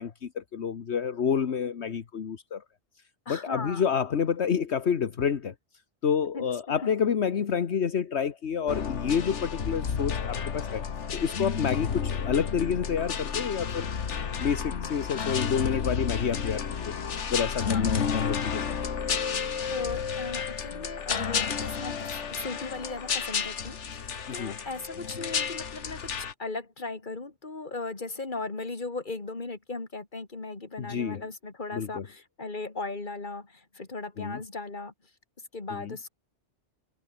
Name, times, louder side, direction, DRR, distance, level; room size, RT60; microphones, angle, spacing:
voice 1, 0.0-2.6 3.3-5.5 6.0-10.9 11.1-13.9 14.4-16.9 17.3-18.8 24.3-24.6 30.8-31.2 31.7-32.1 34.2-34.4 35.7-36.0, left 7 dB, 70° left, 1.5 m, -29 dB
voice 2, 3.3-3.8 6.3-6.5 17.6-17.8 19.7-34.9 35.5-36.1, left 3 dB, 45° left, 2.6 m, -37 dB
sound 1, 8.7-26.3, left 6 dB, 90° left, 1.7 m, -31 dB
omnidirectional pair, 1.2 m